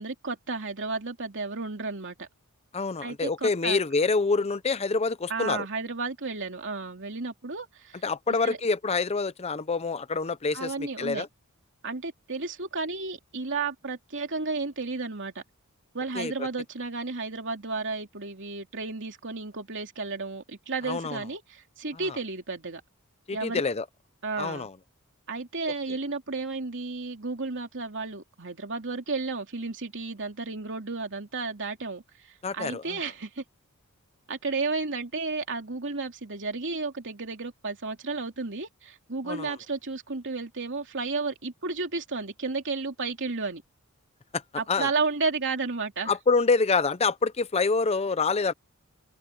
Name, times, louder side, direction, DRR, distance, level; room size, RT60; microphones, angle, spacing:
voice 1, 0.0-2.3 3.0-3.8 5.3-8.0 8.4-8.6 10.5-11.2 11.8-15.4 15.9-22.8 23.3-23.6 24.2-24.7 25.3-33.4 34.3-43.6 44.6-46.1, right 3 dB, 55° right, 3.0 m, -32 dB
voice 2, 2.7-5.7 8.0-11.3 16.2-16.3 20.9-21.2 23.3-23.8 24.4-24.7 32.4-33.0 39.3-39.5 44.3-44.4 44.7-44.9 46.1-48.5, left 4 dB, 30° left, 0.6 m, -26 dB
head